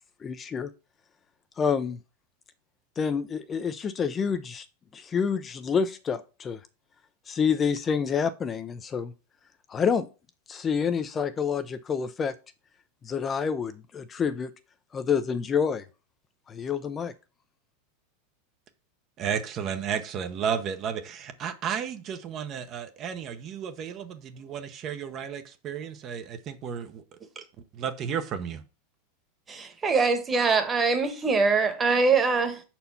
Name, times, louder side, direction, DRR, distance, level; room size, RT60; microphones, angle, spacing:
voice 1, 0.2-0.7 1.6-2.0 3.0-4.7 4.9-6.6 7.3-9.1 9.7-10.1 10.5-12.3 13.0-14.5 14.9-15.8 16.5-17.1, left 6 dB, 25° left, 0.5 m, -28 dB
voice 2, 19.2-27.0 27.7-28.6, right 7 dB, 40° right, 0.9 m, -33 dB
voice 3, 29.5-32.6, right 4 dB, 20° right, 1.4 m, -23 dB
5.7 x 4.4 x 5.5 m
hypercardioid pair, 110°, 0 cm